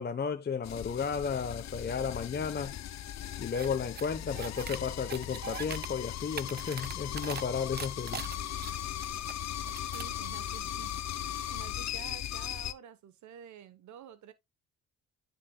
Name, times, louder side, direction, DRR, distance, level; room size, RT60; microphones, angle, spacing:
voice 1, 0.0-2.8 3.4-8.2, left 6 dB, 35° left, 0.9 m, -33 dB
sound 1, 0.6-12.7, left 11 dB, 60° left, 0.7 m, -38 dB
sound 2, 3.5-3.7 4.0-4.8 5.1-5.9 6.2-7.4 7.7-9.3 9.6-10.1, right 7 dB, 35° right, 0.6 m, -41 dB
voice 2, 9.9-11.2 11.5-14.3, right 10 dB, 70° right, 1.1 m, -50 dB
9.9 x 5.9 x 2.3 m
cardioid pair, 90°, 30 cm